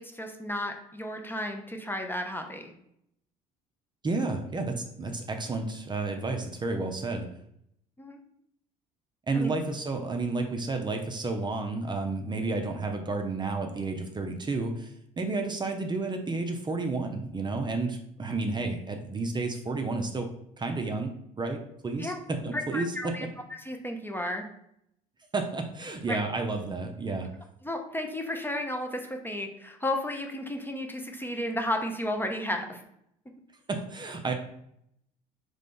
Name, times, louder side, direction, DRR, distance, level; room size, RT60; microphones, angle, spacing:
voice 1, 0.0-2.7 8.0-8.2 9.3-9.5 22.0-22.1 22.5-23.3 23.6-24.5 26.1-26.2 27.6-32.8, left 1 dB, 10° left, 4 dB, 0.7 m, -33 dB
voice 2, 4.0-7.3 9.3-20.3 20.6-21.1 21.4-23.2 25.3-27.3 33.7-34.3, right 3 dB, 25° right, 4 dB, 0.6 m, -31 dB
3.7 x 3.3 x 3.7 m, 0.74 s
hypercardioid pair, 60°, 20 cm